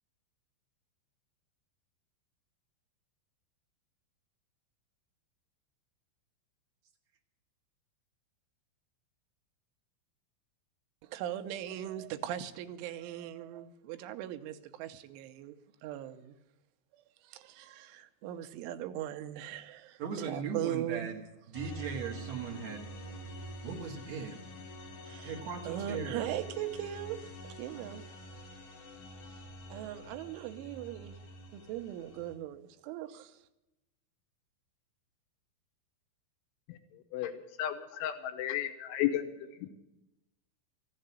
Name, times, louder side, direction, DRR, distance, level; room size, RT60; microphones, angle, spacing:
voice 1, 11.0-15.6 15.8-16.4 16.9-20.0 20.3-21.1 25.1-25.3 25.7-28.0 29.3-29.4 29.7-31.2 31.5-33.4, right 12 dB, 85° right, 3.2 m, -39 dB
voice 2, 20.0-21.2 21.5-22.9 23.6-24.4 25.2-26.3, right 6 dB, 55° right, 2.0 m, -38 dB
sound 1, 21.5-32.3, equal, 50° left, 2.5 m, -46 dB
voice 3, 37.6-39.3, left 12 dB, 85° left, 3.3 m, -33 dB
15.0 x 7.7 x 9.6 m
omnidirectional pair, 5.5 m